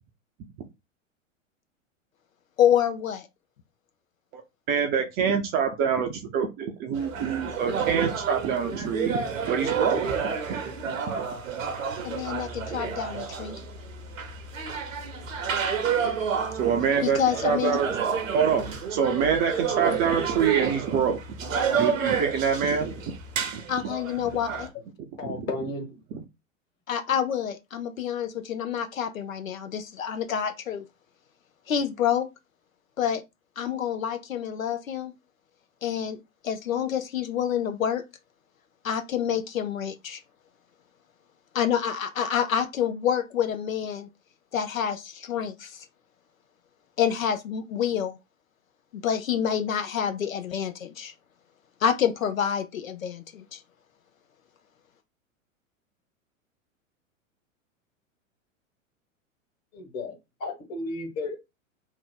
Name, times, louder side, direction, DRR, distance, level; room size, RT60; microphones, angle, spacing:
voice 1, 2.6-3.3 12.0-13.6 17.0-17.7 23.7-24.7 26.9-30.8 31.7-32.3 33.0-33.2 33.6-35.1 35.8-36.2 36.4-38.0 38.8-40.2 41.5-44.1 44.5-45.8 47.0-48.2 48.9-51.1 51.8-53.6, left 8 dB, 85° left, 0.6 m, -27 dB
voice 2, 4.7-10.6 11.1-11.3 16.5-18.0 18.3-21.2 21.5-23.1 23.5-23.6 25.2-25.5 26.1-26.2, right 7 dB, 25° right, 0.4 m, -26 dB
sound 1, 6.9-24.7, right 6 dB, 75° right, 0.8 m, -30 dB
voice 3, 25.2-25.9 59.7-60.1 60.4-61.4, left 2 dB, 40° left, 1.4 m, -33 dB
2.8 x 2.0 x 3.7 m
hypercardioid pair, 100°, 39 cm